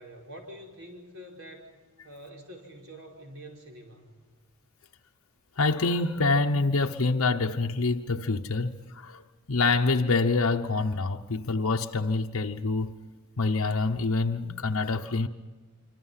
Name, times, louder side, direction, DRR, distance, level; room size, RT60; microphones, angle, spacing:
voice 1, 0.0-1.7 2.0-4.1, equal, 65° right, 5.4 m, -46 dB
voice 2, 5.6-9.2 9.5-12.9 13.4-15.3, left 3 dB, 70° left, 0.9 m, -26 dB
26.0 x 26.0 x 5.8 m
head